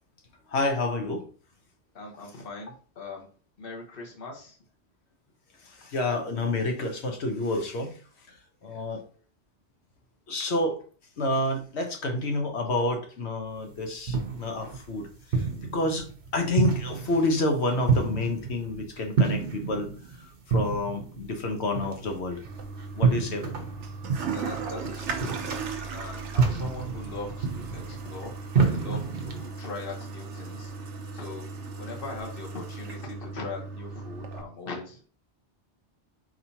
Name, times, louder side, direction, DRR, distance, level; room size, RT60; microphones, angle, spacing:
voice 1, 0.5-1.2 5.6-8.0 8.3-9.0 10.3-10.8 11.2-16.1 16.3-19.9 20.2-22.4 23.0-23.4, left 2 dB, 75° left, 4 dB, 1.2 m, -29 dB
voice 2, 1.9-3.3 3.6-4.6 8.6-8.8 24.3-25.4 25.9-30.7 31.1-31.5 31.8-35.0, left 3 dB, 55° left, 0 dB, 1.3 m, -40 dB
sound 1, 13.6-29.5, right 5 dB, 55° right, 0.9 m, -29 dB
Toilet flush, 22.4-34.4, right 4 dB, 85° right, 1.0 m, -37 dB
4.5 x 3.8 x 2.8 m, 0.40 s
omnidirectional pair, 1.2 m